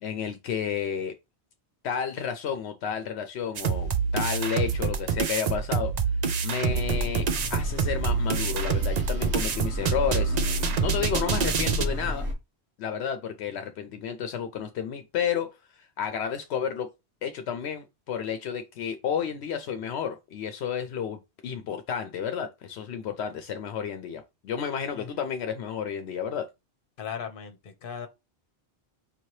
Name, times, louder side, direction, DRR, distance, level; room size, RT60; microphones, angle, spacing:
voice 1, 0.0-1.1 1.8-5.9 6.4-12.3 12.8-15.5 15.7-16.9 17.2-26.5, left 7 dB, 75° left, 0.8 m, -31 dB
sound 1, 3.6-11.9, right 6 dB, 55° right, 0.5 m, -27 dB
sound 2, 6.7-12.3, left 1 dB, 90° right, 1.7 m, -32 dB
voice 2, 27.0-28.1, left 7 dB, 55° left, 1.0 m, -38 dB
5.5 x 2.8 x 3.1 m
omnidirectional pair, 1.1 m